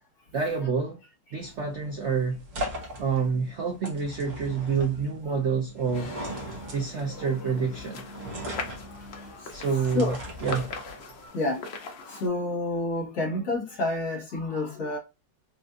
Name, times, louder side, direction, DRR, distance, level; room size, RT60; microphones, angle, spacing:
voice 1, 0.3-1.0 1.3-2.4 3.0-6.2 6.7-8.1 9.5-10.7, right 5 dB, 65° right, 0.6 m, -28 dB
sound 1, 1.4-11.3, right 1 dB, 50° right, 1.3 m, -39 dB
sound 2, 5.9-12.3, left 3 dB, 85° left, 0.5 m, -40 dB
voice 2, 9.7-10.2 11.3-11.6 12.1-15.0, left 2 dB, 60° left, 1.7 m, -29 dB
4.1 x 2.5 x 2.4 m
omnidirectional pair, 2.0 m